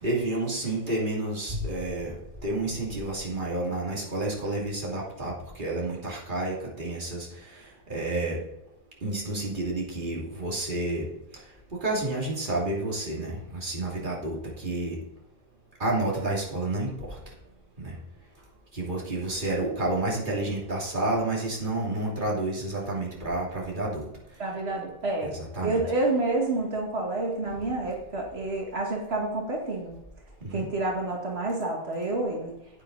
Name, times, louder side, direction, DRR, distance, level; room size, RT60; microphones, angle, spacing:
voice 1, 0.0-2.1 2.4-8.4 9.0-11.1 11.7-15.0 15.8-17.2 17.8-17.9 18.7-24.1 25.2-25.8 30.4-30.7, right 2 dB, 50° right, -4 dB, 3.0 m, -30 dB
voice 2, 24.4-25.3 25.6-29.9 30.5-32.5, right 2 dB, 85° right, -2 dB, 2.2 m, -29 dB
9.9 x 9.3 x 4.0 m, 0.86 s
omnidirectional pair, 1.0 m